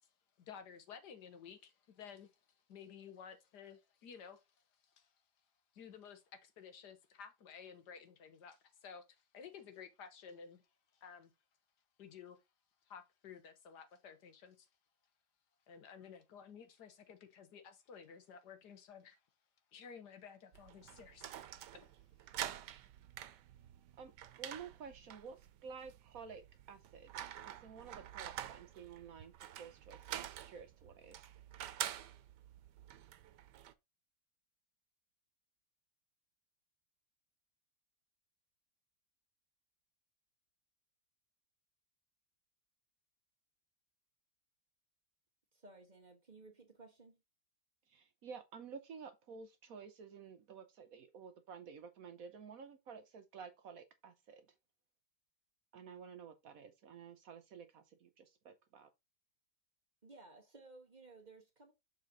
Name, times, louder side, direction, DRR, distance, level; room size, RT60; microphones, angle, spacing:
voice 1, 0.4-2.3 2.7-4.5 4.8-5.1 5.7-10.6 10.9-11.3 12.0-12.4 12.9-14.7 15.7-19.2 19.7-21.5, left 7 dB, 75° left, 1.7 m, -54 dB
sound 1, 20.5-33.7, right 11 dB, 85° right, 1.3 m, -48 dB
voice 2, 24.4-26.4 26.7-29.3 29.6-31.2 47.9-54.4 55.7-58.9, right 6 dB, 60° right, 1.1 m, -52 dB
voice 3, 45.5-47.2 60.0-61.7, right 3 dB, 25° right, 1.6 m, -58 dB
6.8 x 4.1 x 4.0 m
omnidirectional pair, 1.8 m